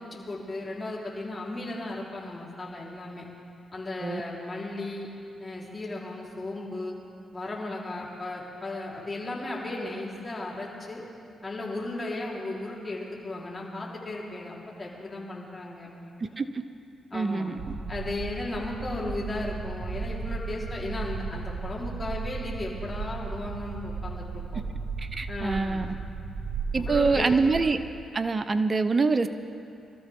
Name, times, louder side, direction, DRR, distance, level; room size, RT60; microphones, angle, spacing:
voice 1, 0.1-3.3 3.7-5.1 5.4-7.0 7.3-11.0 11.4-16.2 17.1-17.5 17.9-24.6 25.3-25.9 26.7-27.5, left 2 dB, 30° left, -4 dB, 4.2 m, -35 dB
voice 2, 17.1-17.7 25.0-25.9 26.7-27.8 28.1-29.3, right 4 dB, 40° right, 10 dB, 0.9 m, -25 dB
sound 1, 17.6-27.7, right 4 dB, 60° right, 1.9 m, -35 dB
24.5 x 13.5 x 3.8 m, 2.5 s
supercardioid pair, 55°, 0 cm